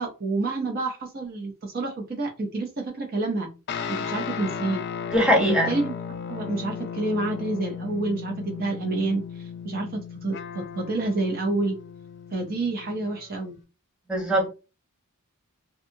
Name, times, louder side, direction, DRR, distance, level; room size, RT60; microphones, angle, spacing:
voice 1, 0.0-3.5 3.9-4.8 5.4-5.9 6.3-9.2 9.6-11.8 12.3-13.6, right 2 dB, 40° right, 0.6 m, -28 dB
sound 1, 3.7-13.4, left 7 dB, 50° left, 0.4 m, -36 dB
voice 2, 5.1-5.8 14.1-14.5, equal, 5° right, 0.8 m, -21 dB
2.6 x 2.4 x 2.6 m
head